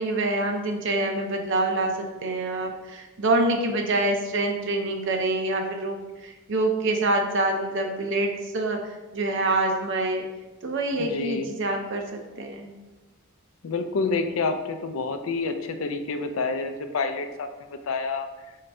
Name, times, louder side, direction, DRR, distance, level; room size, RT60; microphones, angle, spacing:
voice 1, 0.0-8.8 9.1-10.2 10.6-12.7, right 2 dB, 60° right, 3 dB, 0.6 m, -26 dB
voice 2, 11.0-11.5 13.6-18.3, left 4 dB, 75° left, 7 dB, 0.4 m, -28 dB
3.8 x 3.3 x 4.2 m, 1.1 s
head